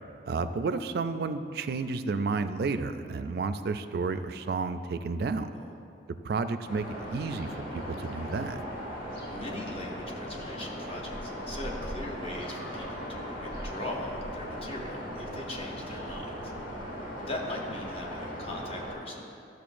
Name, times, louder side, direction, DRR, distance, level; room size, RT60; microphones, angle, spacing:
voice 1, 0.2-5.5 6.2-8.6, right 4 dB, 60° right, 10 dB, 0.3 m, -31 dB
sound 1, 6.7-18.9, equal, 50° left, 1.3 m, -38 dB
voice 2, 9.3-16.5 17.2-19.3, left 1 dB, 30° left, -1 dB, 0.9 m, -40 dB
12.5 x 6.6 x 2.5 m, 2.6 s
head